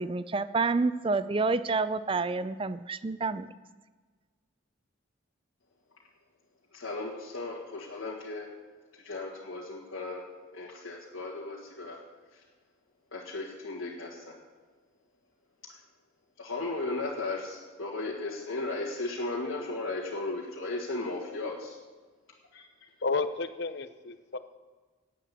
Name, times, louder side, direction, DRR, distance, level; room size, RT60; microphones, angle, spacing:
voice 1, 0.0-3.5, right 3 dB, 25° right, 14 dB, 0.4 m, -28 dB
voice 2, 6.7-8.5 9.0-10.2 10.5-12.0 13.1-14.4 16.4-21.8 22.5-22.6, left 2 dB, 75° left, -5 dB, 1.8 m, -35 dB
voice 3, 23.0-24.4, left 3 dB, 55° left, 11 dB, 0.7 m, -31 dB
11.0 x 8.4 x 8.4 m, 1.4 s
head